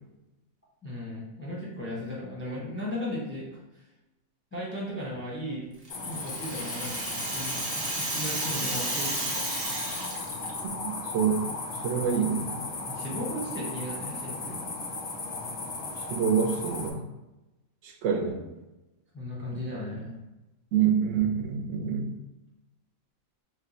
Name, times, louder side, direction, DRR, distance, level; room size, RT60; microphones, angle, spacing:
voice 1, 0.8-3.8 4.5-5.7 6.0-7.0 7.3-9.6 12.8-14.7 19.1-20.2, left 1 dB, 15° left, -6 dB, 0.5 m, -36 dB
Rattle (instrument), 5.8-10.6, right 2 dB, 40° right, 0.5 m, -33 dB
sound 1, 5.9-16.9, left 3 dB, 80° left, 0.3 m, -36 dB
voice 2, 10.8-11.4 11.8-12.6 16.1-17.0 17.8-18.4 20.7-22.1, right 7 dB, 70° right, 3 dB, 0.9 m, -26 dB
2.9 x 2.2 x 3.9 m, 0.99 s
omnidirectional pair, 1.5 m